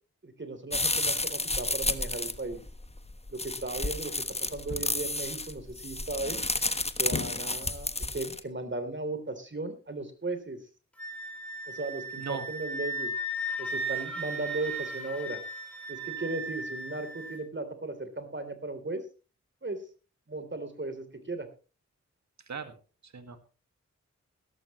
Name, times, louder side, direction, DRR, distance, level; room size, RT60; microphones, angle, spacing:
voice 1, 0.2-2.6 3.3-4.2 4.5-6.4 7.0-10.6 11.7-13.1 13.6-15.4 15.9-19.0 19.6-19.8 20.3-21.5, right 2 dB, 40° right, 9 dB, 3.4 m, -36 dB
sound 1, 0.7-8.4, left 2 dB, 20° left, 1.3 m, -31 dB
sound 2, 4.7-5.3 7.1-7.9, left 5 dB, 45° left, 0.9 m, -38 dB
Wind instrument woodwind instrument, 11.0-17.4, right 1 dB, 5° left, 5.1 m, -36 dB
voice 2, 22.5-22.8 23.0-23.4, right 6 dB, 70° right, 9 dB, 1.9 m, -38 dB
16.5 x 14.0 x 3.1 m, 0.34 s
cardioid pair, 50°, 29 cm